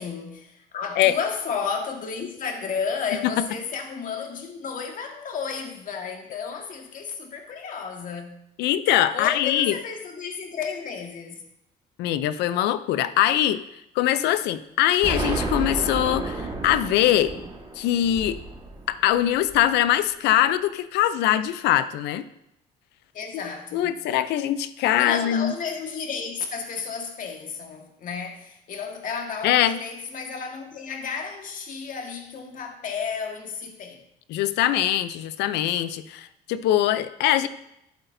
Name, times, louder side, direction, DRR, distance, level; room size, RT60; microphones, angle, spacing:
voice 1, 0.0-8.4 9.1-11.3 23.1-23.9 25.0-34.0, left 6 dB, 50° left, 1.6 m, -32 dB
voice 2, 8.6-9.8 12.0-13.6 14.0-17.3 17.8-18.4 18.9-22.2 23.3-25.5 29.4-29.8 34.3-37.5, left 12 dB, 85° left, 0.5 m, -22 dB
Explosion, 15.0-19.9, right 3 dB, 25° right, 1.6 m, -32 dB
11.5 x 8.1 x 2.7 m
cardioid pair, 110°, 17 cm